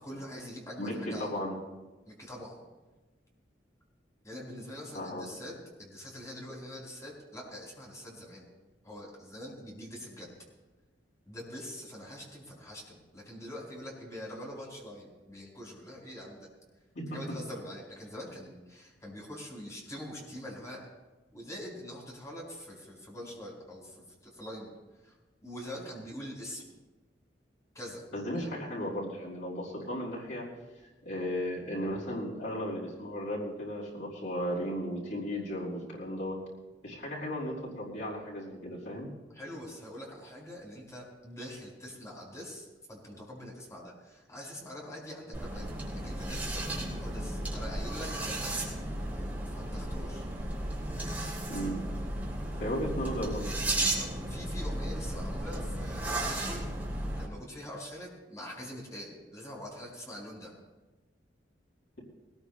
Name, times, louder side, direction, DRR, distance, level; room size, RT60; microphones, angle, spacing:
voice 1, 0.0-1.4 2.1-2.6 4.2-8.5 8.8-10.3 11.2-16.5 17.1-20.9 21.3-24.7 25.0-25.2 25.4-26.6 27.7-28.0 28.3-28.5 39.3-45.7 45.9-48.7 49.5-50.3 53.8-60.5, equal, 20° left, -2 dB, 4.7 m, -44 dB
voice 2, 0.8-1.6 4.9-5.3 16.9-17.2 28.1-30.4 31.0-36.4 36.8-39.1 51.5-51.8 52.6-53.5, equal, 90° left, -6 dB, 5.1 m, -35 dB
sound 1, 45.3-57.3, right 1 dB, 10° right, 3.7 m, -34 dB
21.0 x 19.5 x 2.2 m, 1.1 s
head